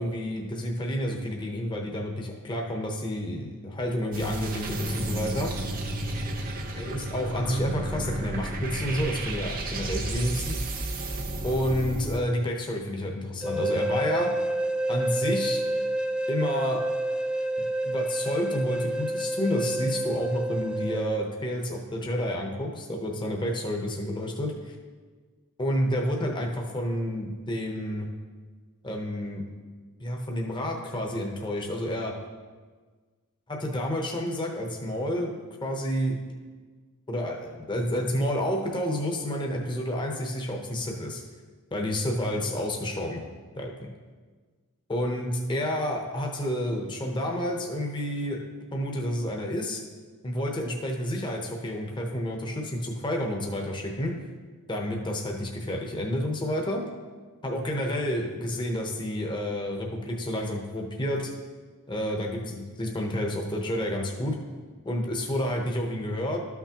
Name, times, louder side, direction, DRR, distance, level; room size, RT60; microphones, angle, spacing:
voice 1, 0.0-5.5 6.7-10.6 11.4-14.3 14.9-15.6 16.3-16.8 17.8-24.7 25.6-28.1 28.8-29.4 30.0-32.1 33.5-35.3 35.6-36.2 37.1-41.2 41.7-43.2 43.6-43.9 44.9-48.4 48.7-49.8 50.2-54.1 54.7-56.8 57.4-61.3 61.9-64.4 64.8-66.4, equal, 20° left, 0 dB, 0.8 m, -30 dB
sound 1, 4.1-12.2, right 1 dB, 40° right, 0.8 m, -32 dB
sound 2, 13.4-21.0, right 1 dB, 5° right, 0.4 m, -28 dB
12.5 x 5.9 x 2.9 m, 1.4 s
head